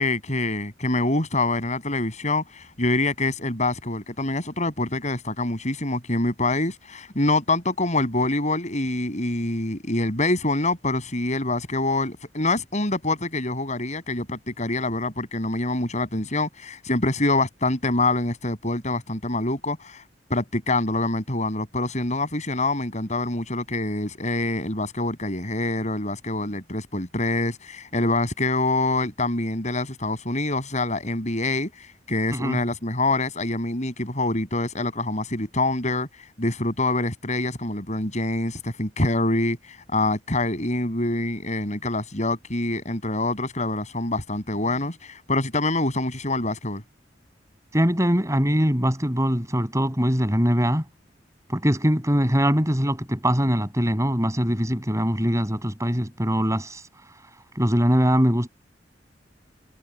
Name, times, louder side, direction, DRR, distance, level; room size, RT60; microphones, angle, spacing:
voice 1, 0.0-20.0 20.3-31.7 32.1-36.1 36.4-39.6 39.9-46.8, left 2 dB, 40° left, 7.8 m, -25 dB
voice 2, 47.7-50.9 51.5-56.8 57.6-58.5, equal, 15° right, 7.7 m, -22 dB
head